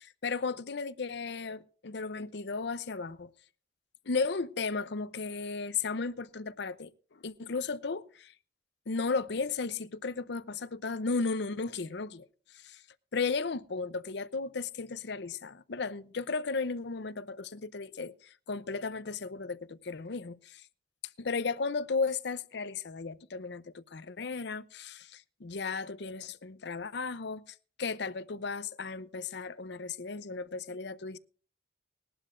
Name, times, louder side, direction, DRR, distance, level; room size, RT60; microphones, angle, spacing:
voice 1, 0.0-3.3 4.1-8.3 8.9-12.3 12.5-12.8 13.1-20.7 21.2-31.2, left 4 dB, 65° left, 0.7 m, -35 dB
20.5 x 12.0 x 2.5 m
head